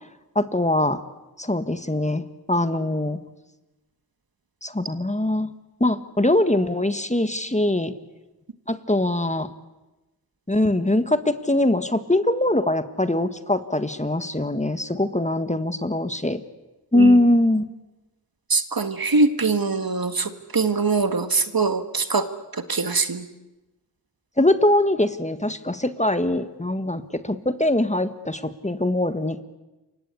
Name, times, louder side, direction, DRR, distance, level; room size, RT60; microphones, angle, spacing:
voice 1, 0.3-1.0 1.4-2.2 2.5-3.2 4.6-5.5 5.8-7.9 8.7-9.5 10.5-16.4 16.9-17.7 24.4-29.4, left 1 dB, 15° left, 10 dB, 1.6 m, -22 dB
voice 2, 18.5-22.3 22.7-23.3, right 4 dB, 60° right, 9 dB, 1.8 m, -22 dB
28.0 x 24.0 x 8.5 m, 1.1 s
wide cardioid pair, 50°, 40 cm